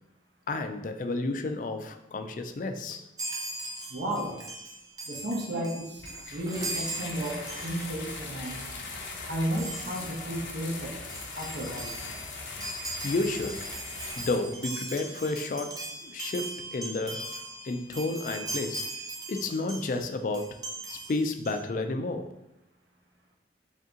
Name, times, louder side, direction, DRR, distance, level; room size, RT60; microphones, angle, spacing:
voice 1, 0.5-3.0 13.0-13.7 14.2-18.8 19.3-20.6 20.9-22.3, left 2 dB, 45° left, 7 dB, 0.3 m, -31 dB
Chime, 3.2-8.1 8.4-8.7 9.6-10.2 10.7-10.8 11.0-20.0 20.3-21.6, right 2 dB, 20° right, 0.5 m, -39 dB
voice 2, 3.9-4.3 5.1-6.1 6.3-8.6 9.3-10.9 11.4-11.9, right 1 dB, 65° right, 0 dB, 0.8 m, -33 dB
sound 1, 6.0-14.4, left 3 dB, 90° left, 0.7 m, -40 dB
3.4 x 2.7 x 3.7 m, 0.86 s
head